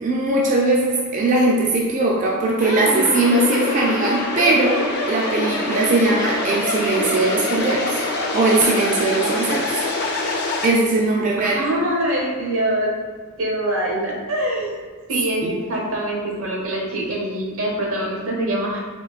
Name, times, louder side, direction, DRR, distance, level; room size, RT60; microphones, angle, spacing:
voice 1, 0.0-8.0 8.3-9.8 10.6-11.5 15.4-15.6, right 2 dB, 40° right, -2 dB, 0.3 m, -20 dB
sound 1, 2.6-10.7, left 2 dB, 55° left, 0.5 m, -24 dB
voice 2, 11.4-12.9 13.4-14.8 15.1-18.8, right 1 dB, 85° right, -3 dB, 0.9 m, -24 dB
3.7 x 2.9 x 2.4 m, 1.5 s
head